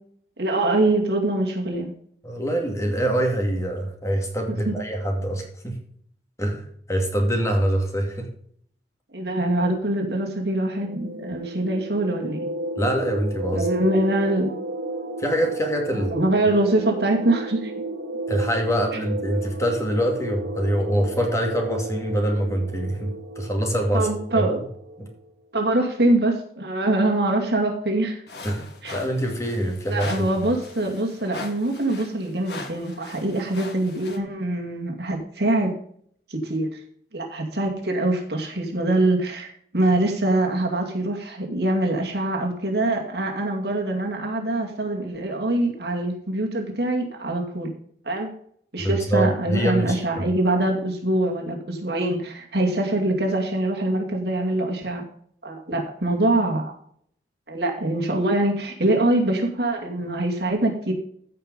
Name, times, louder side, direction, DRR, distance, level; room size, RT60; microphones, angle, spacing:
voice 1, 0.4-1.9 4.6-4.7 9.1-12.4 13.5-14.5 15.9-17.7 23.9-24.6 25.5-28.2 28.8-28.9 29.9-35.7 36.3-36.7 37.1-47.7 48.1-48.3 48.7-55.1 55.4-56.7 57.5-60.9, right 1 dB, 60° right, 1 dB, 2.4 m, -24 dB
voice 2, 2.2-5.7 6.4-8.3 12.8-13.7 15.2-16.1 18.3-24.1 24.3-24.4 25.0-25.1 28.4-28.7 28.9-30.3 48.8-50.3, right 1 dB, 15° left, 2 dB, 2.4 m, -24 dB
sound 1, 10.8-25.1, right 1 dB, 90° right, 2.2 m, -33 dB
sound 2, 28.3-34.2, left 3 dB, 65° left, 2.0 m, -40 dB
15.0 x 5.4 x 5.4 m, 0.63 s
head